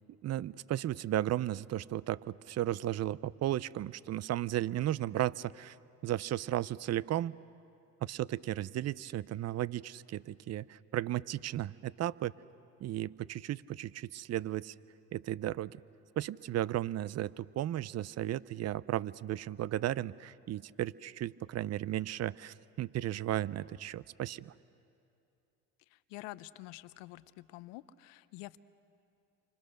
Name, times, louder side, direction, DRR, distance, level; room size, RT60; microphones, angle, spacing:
voice 1, 0.2-5.8 6.0-7.4 8.0-12.3 12.8-14.7 15.1-15.8 16.2-24.5, right 13 dB, 40° right, 20 dB, 0.6 m, -35 dB
voice 2, 25.9-28.6, left 18 dB, 80° left, 15 dB, 0.8 m, -48 dB
29.5 x 26.0 x 6.6 m, 2.5 s
supercardioid pair, 70°, 39 cm